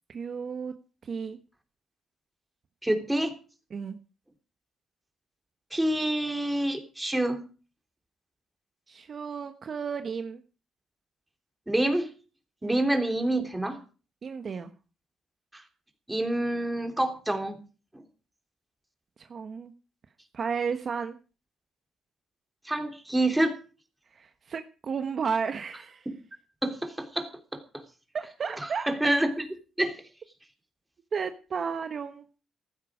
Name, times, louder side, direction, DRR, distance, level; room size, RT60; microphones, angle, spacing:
voice 1, 0.1-0.7 1.0-1.4 3.7-4.0 8.9-10.4 12.6-12.8 14.2-14.7 19.2-19.7 20.3-21.2 24.1-26.1 28.1-28.9 31.1-32.2, right 6 dB, 50° right, 8 dB, 1.2 m, -33 dB
voice 2, 2.8-3.3 5.7-7.4 11.7-12.1 12.6-13.8 15.5-15.6 16.1-17.6 17.9-18.0 22.6-23.6 26.0-26.2 26.6-27.8 28.6-30.0, right 1 dB, 10° right, 4 dB, 3.2 m, -27 dB
15.5 x 12.0 x 5.0 m, 0.36 s
cardioid pair, 90°, 0 cm